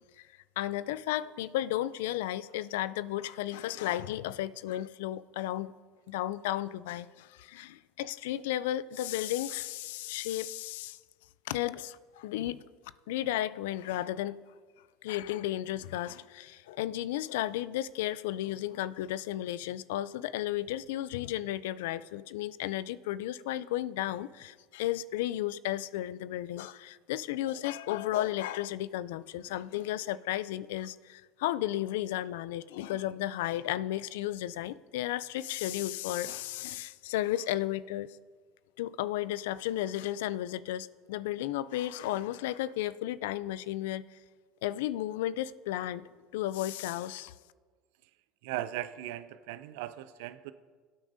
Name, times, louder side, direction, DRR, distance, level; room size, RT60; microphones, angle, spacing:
voice 1, 0.6-5.7 6.1-11.0 11.5-12.6 13.1-14.4 15.0-38.2 38.8-44.0 44.6-47.3, left 13 dB, 80° left, 0.4 m, -34 dB
voice 2, 48.4-50.5, right 14 dB, 75° right, 0.4 m, -38 dB
21.5 x 8.7 x 2.7 m
supercardioid pair, 90°, 0 cm